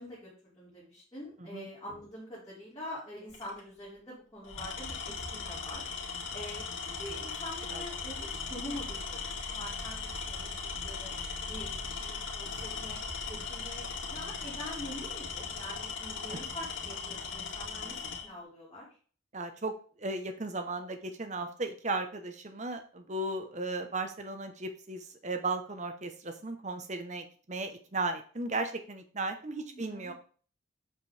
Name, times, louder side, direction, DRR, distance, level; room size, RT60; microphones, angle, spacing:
voice 1, 0.0-6.0 6.3-11.1 11.5-13.0 13.3-18.9 29.5-30.1, equal, 20° left, -9 dB, 3.1 m, -45 dB
Tools, 3.3-3.6 4.4-18.3, left 5 dB, 75° left, 2.2 m, -38 dB
voice 2, 19.3-30.1, right 2 dB, 35° right, 7 dB, 0.9 m, -36 dB
7.8 x 5.9 x 3.4 m, 0.41 s
head